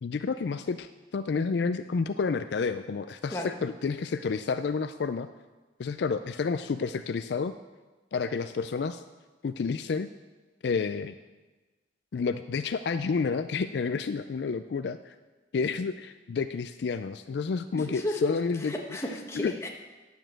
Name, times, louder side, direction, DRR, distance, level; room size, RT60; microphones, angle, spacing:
voice 1, 0.0-5.3 5.8-7.5 8.1-9.0 9.4-10.1 10.6-11.1 12.1-15.1 15.5-18.7 19.3-19.5, left 5 dB, 60° left, 10 dB, 0.4 m, -30 dB
voice 2, 17.7-18.3 18.7-19.7, left 1 dB, 15° left, 1 dB, 1.3 m, -33 dB
10.0 x 7.2 x 7.5 m, 1.2 s
head